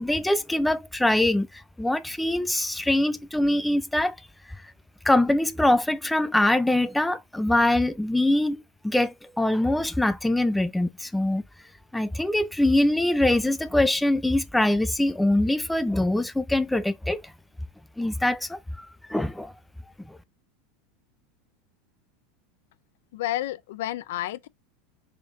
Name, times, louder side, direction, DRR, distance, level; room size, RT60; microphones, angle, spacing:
voice 1, 0.0-4.2 5.0-11.4 11.9-17.2 18.0-19.5 20.1-20.2, left 1 dB, 5° left, 0.3 m, -23 dB
voice 2, 23.1-24.5, left 14 dB, 80° left, 0.3 m, -30 dB
3.5 x 2.7 x 3.4 m
supercardioid pair, 130°, 0 cm